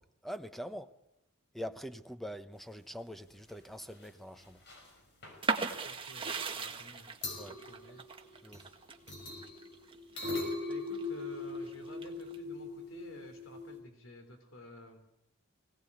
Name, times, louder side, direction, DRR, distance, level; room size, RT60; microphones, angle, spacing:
voice 1, 0.2-0.9 1.5-4.6 7.3-7.6 8.4-8.7, equal, ahead, 0.9 m, -43 dB
sound 1, 3.3-3.5 3.8-4.1 4.4-4.9 5.2-5.4 6.9-7.0 7.2-8.7 9.1-13.8, left 3 dB, 55° left, 5.9 m, -41 dB
sound 2, 5.4-11.1 11.5-12.3, right 4 dB, 25° right, 1.7 m, -37 dB
voice 2, 5.8-8.0 10.7-15.1, left 1 dB, 70° left, 3.3 m, -52 dB
21.5 x 18.0 x 9.7 m
head